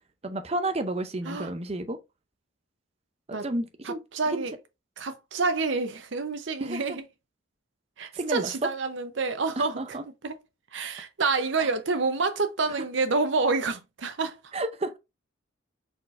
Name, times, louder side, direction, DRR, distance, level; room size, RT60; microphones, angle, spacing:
voice 1, 0.2-2.0 3.3-4.0 4.3-4.4 6.6-7.0 8.1-8.5 9.6-10.0 11.6-11.7 14.5-15.0, right 2 dB, 30° right, 0.6 m, -31 dB
voice 2, 3.8-4.5 5.0-7.1 8.0-10.0 10.2-10.4 10.7-14.4, right 4 dB, 65° right, 0.8 m, -28 dB
4.3 x 4.1 x 2.6 m
head